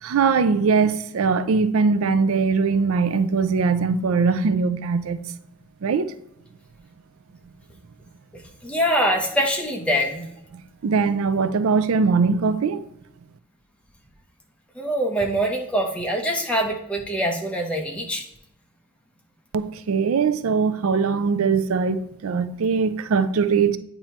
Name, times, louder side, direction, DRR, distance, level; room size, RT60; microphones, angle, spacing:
voice 1, 0.0-5.2 5.8-6.1 10.8-12.8 19.5-23.8, right 5 dB, 85° right, 0.4 m, -21 dB
voice 2, 8.6-10.2 14.8-18.2, equal, 5° left, 0.9 m, -24 dB
8.8 x 3.0 x 4.4 m
head